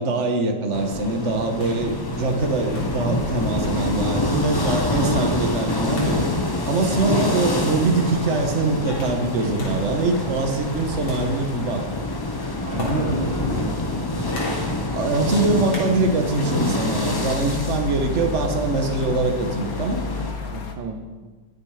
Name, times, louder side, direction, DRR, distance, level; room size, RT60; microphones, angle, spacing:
voice 1, 0.0-6.3 6.6-11.8 14.9-20.3, right 3 dB, 40° right, 5 dB, 1.7 m, -23 dB
sound 1, 0.7-20.3, left 1 dB, 15° left, 0.8 m, -27 dB
sound 2, 1.4-20.7, left 4 dB, 50° left, 1.7 m, -37 dB
sound 3, 1.6-16.4, left 1 dB, 85° left, 4.4 m, -36 dB
voice 2, 10.9-11.2 12.7-13.8 17.9-18.3 20.4-21.3, right 4 dB, 75° right, 2 dB, 1.9 m, -32 dB
20.5 x 9.3 x 5.1 m, 1.4 s
omnidirectional pair, 2.1 m